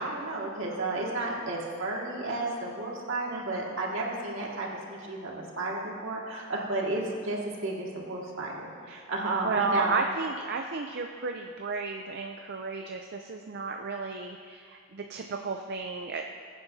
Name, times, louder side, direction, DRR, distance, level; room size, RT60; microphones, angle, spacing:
voice 1, 0.0-9.9, right 2 dB, 70° right, -3 dB, 2.0 m, -32 dB
voice 2, 3.3-3.6 8.9-9.0 9.4-16.2, right 4 dB, 50° right, 3 dB, 0.5 m, -33 dB
21.0 x 9.3 x 2.7 m, 2.2 s
head